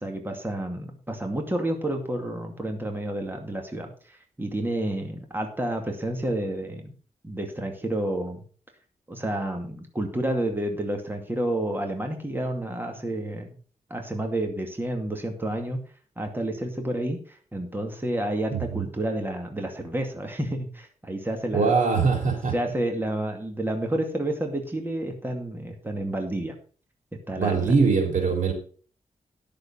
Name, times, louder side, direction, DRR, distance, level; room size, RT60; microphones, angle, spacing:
voice 1, 0.0-6.9 7.2-8.4 9.1-13.5 13.9-15.8 16.2-21.7 22.5-26.5 27.3-27.7, right 1 dB, 15° right, 3 dB, 2.3 m, -30 dB
voice 2, 18.5-18.9 21.5-22.5 27.4-28.5, right 4 dB, 80° right, 3 dB, 3.3 m, -22 dB
11.5 x 6.7 x 5.4 m, 0.42 s
cardioid pair, 80°, 13 cm